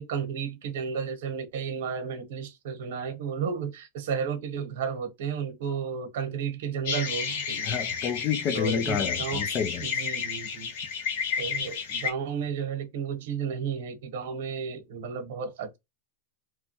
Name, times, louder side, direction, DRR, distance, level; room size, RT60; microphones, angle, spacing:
voice 1, 0.0-7.8 8.5-9.4 9.8-10.7 11.4-15.8, right 6 dB, 70° right, 0.9 m, -33 dB
sound 1, 6.8-12.1, left 6 dB, 65° left, 0.9 m, -31 dB
voice 2, 7.6-9.8, left 7 dB, 35° left, 0.4 m, -29 dB
3.0 x 2.2 x 2.9 m
supercardioid pair, 150°, 0 cm